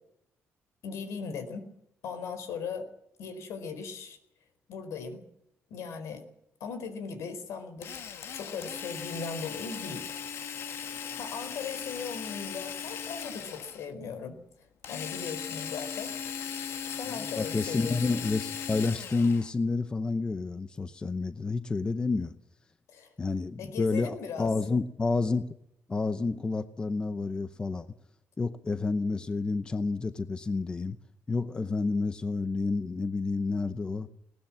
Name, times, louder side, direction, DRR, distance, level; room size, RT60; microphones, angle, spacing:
voice 1, 0.8-1.7 2.0-2.9 3.2-4.2 4.7-5.2 5.7-6.3 6.6-7.9 8.3-10.1 11.2-14.4 14.9-16.1 17.0-18.1 22.9-23.1 23.6-24.5, left 5 dB, 75° left, 10 dB, 4.5 m, -38 dB
Drill, 7.8-13.9 14.8-19.5, left 7 dB, 60° left, 1.6 m, -38 dB
voice 2, 17.1-22.3 23.2-25.5 25.9-27.9 28.4-31.0 31.3-34.1, left 3 dB, 20° left, 11 dB, 0.7 m, -29 dB
20.5 x 19.0 x 7.5 m, 0.76 s
cardioid pair, 170°, 5 cm